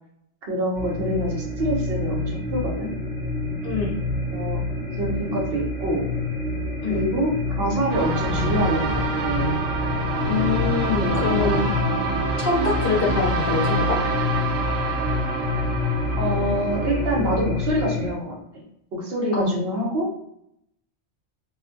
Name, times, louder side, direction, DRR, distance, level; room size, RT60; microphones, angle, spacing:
voice 1, 0.5-2.9 4.3-4.6 5.0-6.0 6.9-9.5 11.0-11.7 16.2-18.4 18.9-20.1, equal, 60° right, -3 dB, 1.0 m, -26 dB
sound 1, 0.7-18.1, left 2 dB, 35° left, 1.1 m, -27 dB
sound 2, 7.9-17.2, right 3 dB, 85° right, 0.9 m, -27 dB
voice 2, 10.3-11.7 12.4-14.0 19.3-19.6, left 4 dB, 55° left, -2 dB, 0.8 m, -24 dB
2.6 x 2.3 x 2.4 m, 0.75 s
omnidirectional pair, 1.2 m